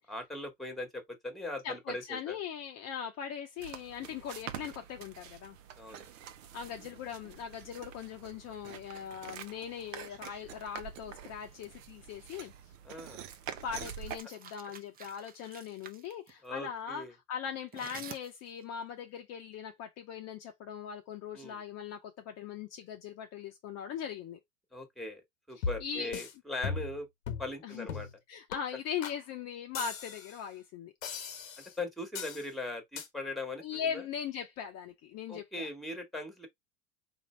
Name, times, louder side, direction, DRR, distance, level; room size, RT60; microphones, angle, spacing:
voice 1, 0.1-2.4 4.0-4.2 5.8-6.1 12.8-13.2 16.4-17.1 21.3-21.6 24.7-25.2 25.5-27.1 27.4-28.1 31.8-34.0 35.3-36.5, left 2 dB, ahead, 1.3 m, -40 dB
voice 2, 1.6-5.6 6.5-12.5 13.6-24.4 25.6-26.1 27.6-27.9 28.3-30.9 33.6-35.7, left 8 dB, 40° left, 0.7 m, -40 dB
sound 1, 3.6-14.2, right 9 dB, 70° right, 0.8 m, -46 dB
sound 2, 13.9-16.3 17.7-18.6, right 6 dB, 20° right, 0.6 m, -49 dB
sound 3, 25.6-26.3 26.6-27.0 27.3-27.5 27.9-28.1 28.5-28.6 29.0-29.2 29.7-30.4 31.0-31.7 32.1-32.5 33.0-33.1, left 5 dB, 85° left, 1.0 m, -38 dB
4.1 x 2.6 x 3.2 m
hypercardioid pair, 95°, 40 cm